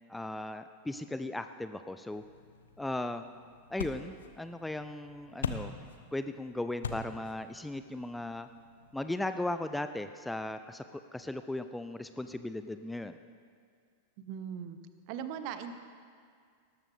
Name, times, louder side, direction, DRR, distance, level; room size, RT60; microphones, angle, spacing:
voice 1, 0.1-2.2 2.8-3.2 3.7-5.7 6.1-8.5 8.9-13.2, left 2 dB, 5° left, 9 dB, 0.4 m, -37 dB
sound 1, 2.1-9.2, left 6 dB, 65° left, 0.8 m, -43 dB
voice 2, 14.2-14.8 15.1-15.7, right 8 dB, 45° right, 10 dB, 0.8 m, -39 dB
18.5 x 13.0 x 3.5 m, 2.1 s
figure-of-eight pair, 90°, 0 cm